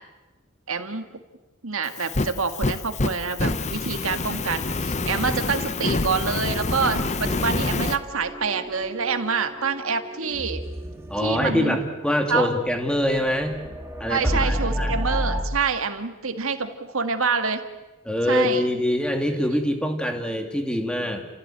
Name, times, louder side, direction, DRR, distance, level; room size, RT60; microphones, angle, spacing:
voice 1, 0.7-1.0 1.6-10.6 11.2-11.8 12.3-12.5 14.1-17.6 18.3-18.7, right 5 dB, 80° right, 7 dB, 2.0 m, -26 dB
Fire, 1.9-8.0, left 3 dB, 35° left, 0.7 m, -27 dB
sound 1, 7.1-15.4, equal, 10° right, 2.3 m, -31 dB
voice 2, 11.1-13.6 14.0-14.9 18.1-21.3, left 1 dB, 5° left, 4 dB, 2.4 m, -24 dB
29.5 x 16.5 x 9.1 m, 1.1 s
head